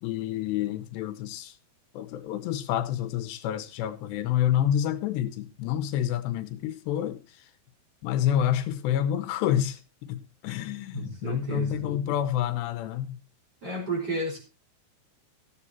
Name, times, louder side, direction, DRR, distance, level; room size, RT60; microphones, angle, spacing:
voice 1, 0.0-1.5 1.9-7.2 8.0-9.8 10.1-13.2, left 11 dB, 85° left, 3.0 m, -28 dB
voice 2, 10.9-11.9 13.6-14.4, right 2 dB, 25° right, 4.7 m, -32 dB
15.0 x 8.6 x 4.3 m
omnidirectional pair, 4.9 m